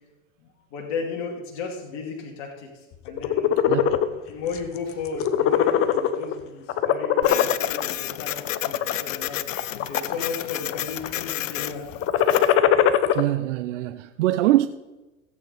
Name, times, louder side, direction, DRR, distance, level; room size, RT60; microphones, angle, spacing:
voice 1, 0.4-3.6 4.1-11.8, left 5 dB, 55° left, 2.5 m, -35 dB
sound 1, 3.1-4.1 4.5-4.8 5.1-6.3 6.7-7.8 8.4-8.9 9.5-10.3 10.6-11.1 11.9-13.2, left 10 dB, 35° left, 0.9 m, -20 dB
voice 2, 3.7-4.0 13.1-14.7, right 15 dB, 70° right, 0.6 m, -23 dB
Printer, 7.2-12.6, left 13 dB, 85° left, 0.7 m, -31 dB
16.5 x 8.6 x 4.0 m
hypercardioid pair, 110°, 38 cm